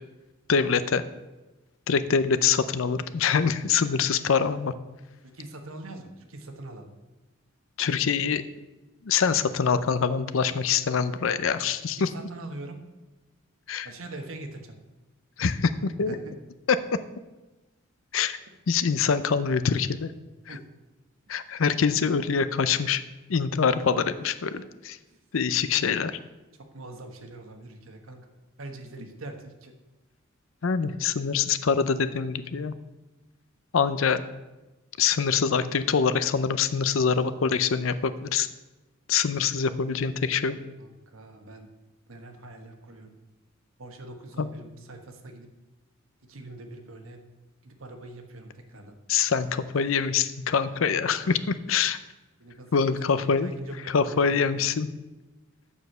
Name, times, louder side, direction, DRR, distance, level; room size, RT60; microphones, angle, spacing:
voice 1, 0.5-1.0 1.9-4.7 7.8-8.4 9.0-12.1 13.7-13.9 15.4-16.1 18.1-18.4 18.7-20.1 20.5-20.6 21.3-23.0 23.3-24.9 25.3-26.2 30.6-32.7 33.7-34.2 35.0-38.5 39.1-40.6 44.4-44.5 49.1-52.0 52.7-53.5 53.9-54.9, left 6 dB, 75° left, 13 dB, 0.5 m, -24 dB
voice 2, 5.2-6.9 12.0-12.8 13.8-14.8 16.1-16.3 20.5-20.6 24.5-24.6 25.1-25.2 26.6-28.3 28.6-29.7 40.8-41.7 42.1-43.1 43.8-45.5 46.3-47.2 47.6-49.0 52.4-54.7, right 2 dB, 85° right, 5 dB, 1.2 m, -43 dB
7.1 x 6.3 x 6.6 m, 1.1 s
head